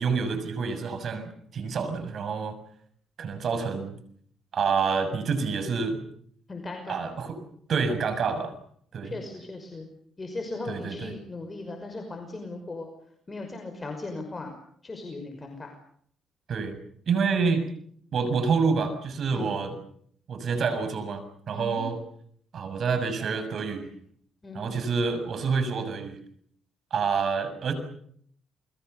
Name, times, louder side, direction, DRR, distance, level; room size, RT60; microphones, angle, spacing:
voice 1, 0.0-2.5 3.2-4.0 4.5-6.0 6.9-7.4 7.7-8.5 8.9-9.1 10.7-11.1 16.5-16.8 17.1-17.6 18.1-19.7 20.3-22.0 22.5-23.8 24.5-26.2 26.9-27.7, right 5 dB, 55° right, 9 dB, 6.7 m, -27 dB
voice 2, 6.5-7.0 9.0-9.9 10.2-12.9 13.3-14.5 14.8-15.7 19.3-19.5 21.5-21.9 24.4-24.7, left 2 dB, 25° left, 4 dB, 5.8 m, -37 dB
29.0 x 22.0 x 6.9 m, 0.64 s
cardioid pair, 90°, 0 cm